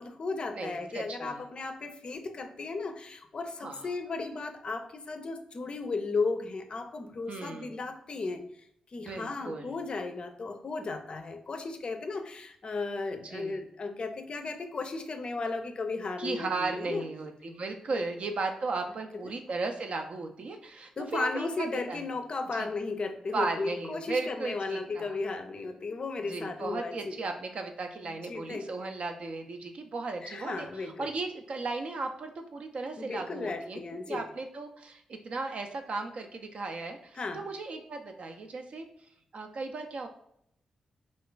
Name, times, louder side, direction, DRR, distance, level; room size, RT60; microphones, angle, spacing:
voice 1, 0.0-8.4 8.9-17.1 17.9-18.0 19.2-19.3 21.0-27.2 28.0-28.8 30.2-31.1 33.0-34.2 37.2-37.4, left 3 dB, 50° left, 7 dB, 0.4 m, -35 dB
voice 2, 0.5-1.4 3.6-3.9 7.3-7.7 9.0-9.8 13.2-13.6 16.2-22.0 22.5-22.7 23.3-25.2 26.3-33.8 34.1-38.9 39.3-40.1, right 3 dB, 60° right, 5 dB, 0.4 m, -36 dB
2.4 x 2.3 x 3.7 m, 0.72 s
cardioid pair, 60°, 2 cm